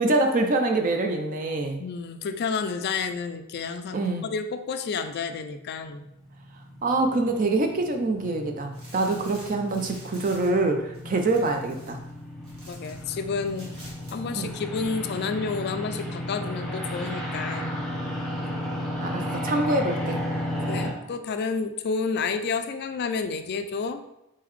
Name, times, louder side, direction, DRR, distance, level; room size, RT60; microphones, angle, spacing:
voice 1, 0.0-1.8 3.9-4.3 6.8-12.0 14.4-14.6 19.0-20.2, right 2 dB, 35° right, 4 dB, 0.4 m, -25 dB
voice 2, 1.8-6.1 11.0-11.2 12.7-13.7 14.1-17.8 20.7-24.0, left 5 dB, 45° left, 9 dB, 0.3 m, -30 dB
sound 1, 6.3-20.9, equal, ahead, 0.7 m, -34 dB
sound 2, 8.7-13.0 13.3-14.2 14.4-14.5, right 1 dB, 70° right, 1.5 m, -49 dB
4.2 x 3.8 x 3.1 m, 0.85 s
head